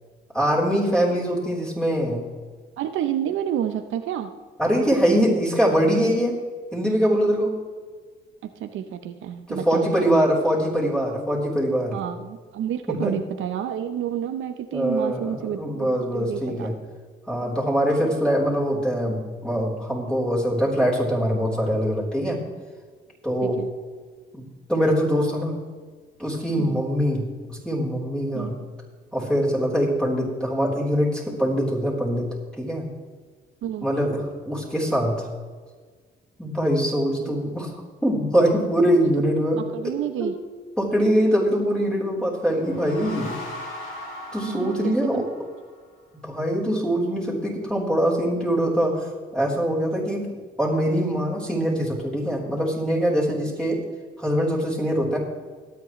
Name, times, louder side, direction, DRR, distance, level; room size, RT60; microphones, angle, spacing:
voice 1, 0.3-2.2 4.6-6.4 6.7-7.6 9.5-12.0 12.9-13.1 14.7-16.7 17.3-22.4 23.2-23.6 24.3-24.4 24.7-25.6 26.2-28.6 29.1-32.3 32.6-32.9 33.8-35.3 36.4-37.7 38.0-39.6 40.2-40.3 40.8-43.4 44.3-45.3 46.1-50.3 50.6-53.8 54.2-55.2, equal, 5° left, -5 dB, 3.8 m, -23 dB
voice 2, 2.8-4.3 8.6-10.3 11.9-16.7 23.4-23.7 26.6-26.8 28.3-28.5 33.6-33.9 39.6-40.3 44.4-45.3, right 10 dB, 80° right, 8 dB, 0.8 m, -30 dB
sound 1, 42.4-45.9, left 1 dB, 80° left, 2.9 m, -38 dB
22.0 x 8.4 x 3.2 m, 1.5 s
cardioid pair, 90°, 20 cm